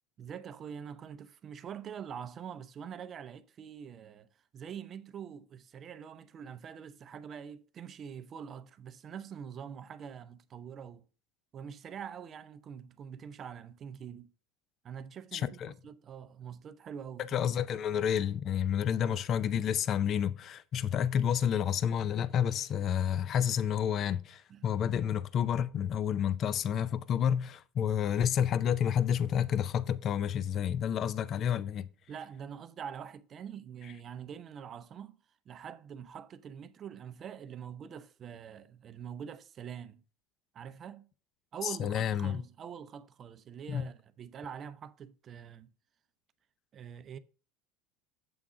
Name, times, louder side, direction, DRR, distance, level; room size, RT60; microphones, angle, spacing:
voice 1, 0.2-4.3 4.5-11.1 11.5-14.3 14.8-17.4 19.0-19.2 24.5-24.6 32.1-35.2 35.5-40.0 40.5-41.1 41.5-45.7 46.7-47.2, right 8 dB, 40° right, 0.5 m, -45 dB
voice 2, 15.3-15.7 17.3-31.9 41.6-42.4 43.7-43.9, left 9 dB, 45° left, 0.4 m, -30 dB
7.8 x 3.6 x 5.0 m
supercardioid pair, 100°, 0 cm